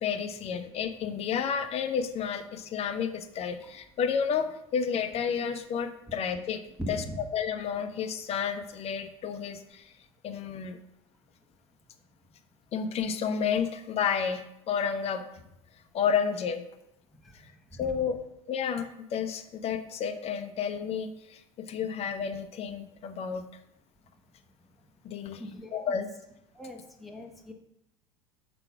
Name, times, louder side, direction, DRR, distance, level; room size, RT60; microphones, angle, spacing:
voice 1, 0.0-6.6 6.9-9.9 10.2-10.8 12.7-15.2 15.9-16.6 17.4-17.5 17.8-18.2 18.5-23.4 25.0-25.4 25.7-26.1, left 7 dB, 35° left, 9 dB, 0.7 m, -31 dB
voice 2, 6.8-7.2 17.2-18.1 25.2-26.0 26.5-27.5, equal, ahead, -1 dB, 1.1 m, -41 dB
5.8 x 3.9 x 5.9 m, 0.83 s
hypercardioid pair, 80°, 17 cm